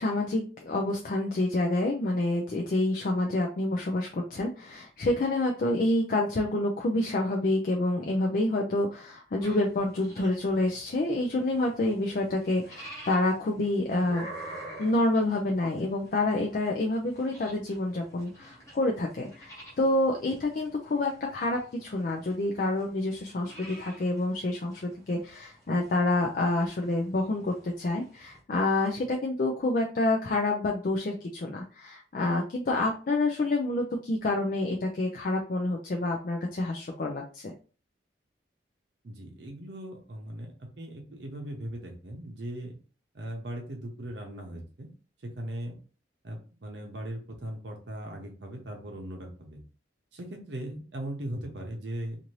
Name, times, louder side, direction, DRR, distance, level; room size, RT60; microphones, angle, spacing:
voice 1, 0.0-14.3 14.8-37.5, left 2 dB, 45° left, 1 dB, 0.4 m, -28 dB
sound 1, 9.4-28.4, right 1 dB, 15° left, 0.9 m, -49 dB
voice 2, 39.0-42.7 43.1-44.9 45.2-45.7 46.2-49.6 50.1-52.2, right 1 dB, 65° right, 1 dB, 0.7 m, -39 dB
2.7 x 2.5 x 3.0 m, 0.37 s
head